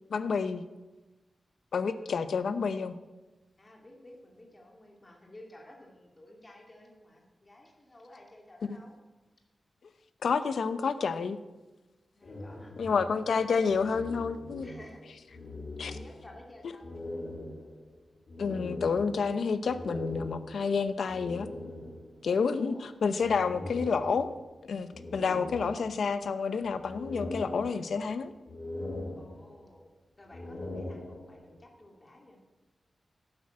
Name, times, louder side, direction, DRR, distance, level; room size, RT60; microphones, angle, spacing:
voice 1, 0.1-0.6 1.7-3.0 10.2-11.4 12.8-14.7 15.8-15.9 18.4-21.5 22.2-22.7 23.0-24.3 24.6-28.3, left 5 dB, 80° left, 11 dB, 0.8 m, -29 dB
voice 2, 1.8-2.1 3.6-9.0 12.1-12.7 13.4-13.5 14.6-15.0 15.3-15.4 15.9-17.0 22.6-22.9 29.2-29.9 30.2-32.4, left 1 dB, 25° left, 0 dB, 2.5 m, -53 dB
sound 1, 12.2-15.0 15.3-16.4 16.8-22.2 23.2-24.5 24.9-26.2 26.6-28.1 28.5-29.8 30.2-31.5, left 2 dB, 50° left, 3.3 m, -41 dB
11.5 x 9.7 x 7.6 m, 1.2 s
wide cardioid pair, 145°, 0 cm